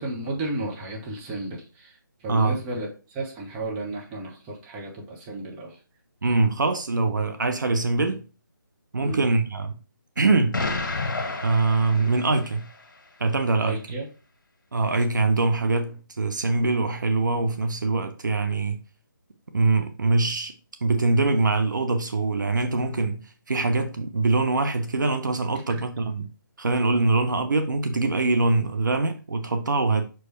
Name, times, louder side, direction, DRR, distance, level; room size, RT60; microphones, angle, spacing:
voice 1, 0.0-1.9 2.2-5.7 9.0-9.3 13.6-14.1, right 2 dB, 15° right, 1.3 m, -33 dB
voice 2, 6.2-8.2 8.9-9.8 10.2-10.6 11.4-12.7 13.2-13.8 14.7-18.8 19.5-20.5 20.8-26.3 26.6-30.0, right 3 dB, 60° right, 0.9 m, -23 dB
Explosion, 10.5-12.7, left 3 dB, 60° left, 1.7 m, -30 dB
6.3 x 4.7 x 3.4 m
figure-of-eight pair, 155°, 11 cm